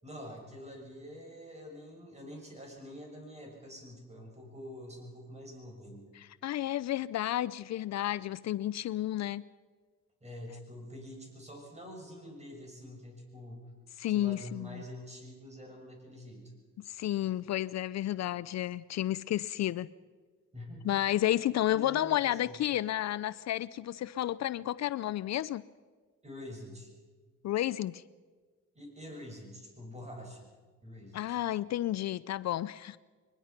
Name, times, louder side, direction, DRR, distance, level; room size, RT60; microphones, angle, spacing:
voice 1, 0.0-6.1 10.2-13.6 14.1-16.5 20.5-21.0 21.7-22.6 26.2-26.9 28.8-30.5 30.8-31.4, equal, 20° right, 1 dB, 6.8 m, -46 dB
voice 2, 6.2-9.5 14.0-14.8 16.8-19.9 20.8-25.6 27.4-28.0 31.1-33.0, left 13 dB, 60° left, 17 dB, 0.5 m, -31 dB
22.5 x 20.5 x 5.9 m, 1.5 s
cardioid pair, 90°, 30 cm